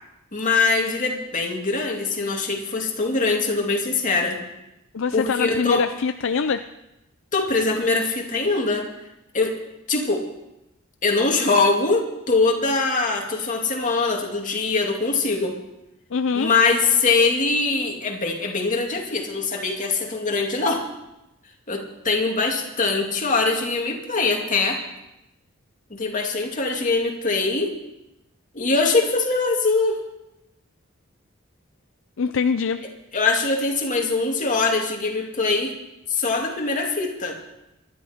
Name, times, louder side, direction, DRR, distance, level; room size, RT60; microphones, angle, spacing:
voice 1, 0.3-4.4 5.1-5.8 7.3-8.9 9.3-9.6 9.9-10.2 11.0-15.6 16.3-20.8 21.7-24.8 25.9-27.7 28.5-30.0 33.1-35.7 36.1-37.4, left 3 dB, 40° left, 1 dB, 2.4 m, -22 dB
voice 2, 4.9-6.7 16.1-16.5 32.2-32.8, left 5 dB, 65° left, 9 dB, 0.5 m, -23 dB
24.5 x 11.5 x 4.3 m, 0.91 s
head